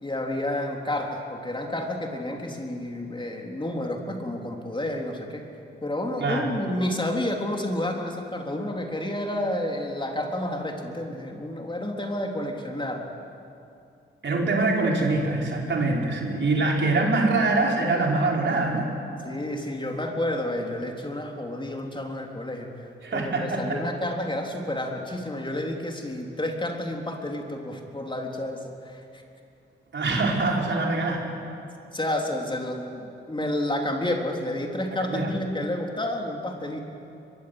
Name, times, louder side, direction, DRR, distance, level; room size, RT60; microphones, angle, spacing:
voice 1, 0.0-5.4 5.8-13.1 19.2-29.0 31.9-36.8, left 1 dB, 25° left, 1 dB, 3.7 m, -30 dB
voice 2, 6.2-6.5 14.2-18.8 23.0-23.8 29.9-31.3 35.0-35.3, right 3 dB, 60° right, -1 dB, 4.9 m, -24 dB
22.5 x 22.5 x 8.1 m, 2.7 s
cardioid pair, 60°, 21 cm